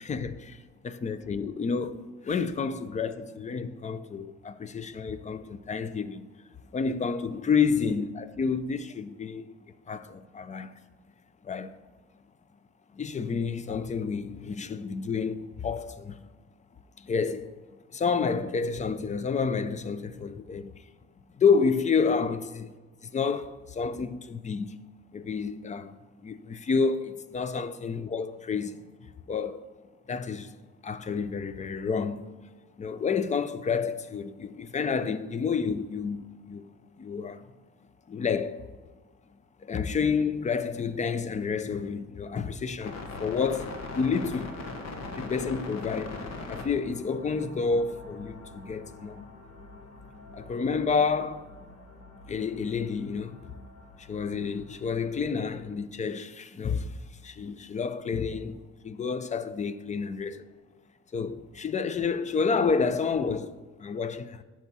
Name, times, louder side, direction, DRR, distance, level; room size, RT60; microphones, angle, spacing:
voice 1, 0.0-6.3 6.7-9.5 9.9-10.7 11.4-11.7 12.9-16.2 17.0-17.5 17.9-20.8 21.4-22.4 23.0-24.8 25.1-25.9 26.2-28.8 29.3-29.7 30.1-30.5 30.8-32.3 32.8-36.7 37.0-37.5 38.1-38.7 39.6-44.6 45.2-46.2 46.5-49.3 50.3-51.5 52.3-53.5 54.0-57.0 57.2-60.4 61.1-64.4, left 5 dB, 25° left, 0.4 m, -29 dB
sound 1, 42.8-55.8, left 3 dB, 65° left, 1.2 m, -43 dB
8.2 x 6.0 x 4.2 m
cardioid pair, 135°, 29 cm